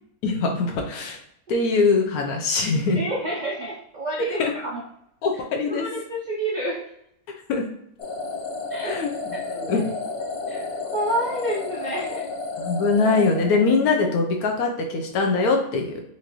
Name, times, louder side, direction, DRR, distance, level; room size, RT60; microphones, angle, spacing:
voice 1, 0.2-1.2 1.5-3.0 4.2-4.5 5.2-5.9 7.5-7.7 8.9-9.1 9.5-9.8 12.6-16.0, left 4 dB, 80° left, 2 dB, 1.2 m, -22 dB
voice 2, 2.9-4.8 5.3-5.4 5.7-6.8 8.7-9.0 9.3-9.9 10.5-12.2, right 1 dB, 60° right, -3 dB, 0.4 m, -29 dB
sound 1, 8.0-14.1, left 3 dB, 60° left, 0.6 m, -32 dB
4.5 x 2.5 x 3.0 m, 0.75 s
omnidirectional pair, 1.6 m